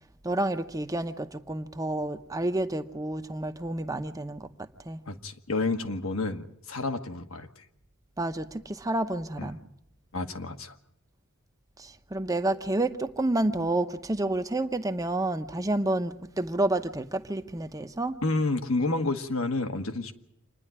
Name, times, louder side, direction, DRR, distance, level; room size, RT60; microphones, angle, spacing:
voice 1, 0.2-5.0 8.2-9.6 11.8-18.2, right 2 dB, 15° right, 8 dB, 0.8 m, -29 dB
voice 2, 5.1-7.6 9.4-9.5 10.1-10.7 18.2-20.1, left 3 dB, 70° left, 7 dB, 1.4 m, -30 dB
27.0 x 10.5 x 9.9 m, 0.80 s
head